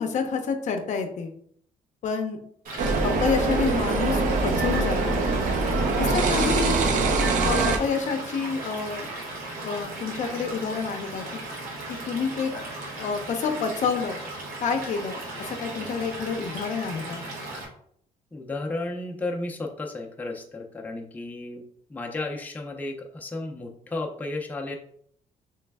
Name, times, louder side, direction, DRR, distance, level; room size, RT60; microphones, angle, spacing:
voice 1, 0.0-1.3 2.0-2.4 2.8-5.2 6.0-6.9 7.4-9.1 9.6-11.2 11.9-12.5 13.0-14.2 14.6-15.2 15.5-17.2, left 5 dB, 55° left, 5 dB, 0.6 m, -28 dB
Stream / Liquid, 2.6-17.6, right 2 dB, 80° right, 1.1 m, -37 dB
sound 1, 2.8-7.8, right 3 dB, 65° right, 0.6 m, -23 dB
voice 2, 6.0-6.5 18.3-21.6 21.9-24.8, left 2 dB, 10° left, 0 dB, 0.5 m, -33 dB
3.2 x 3.1 x 3.4 m, 0.64 s
cardioid pair, 140°, 14 cm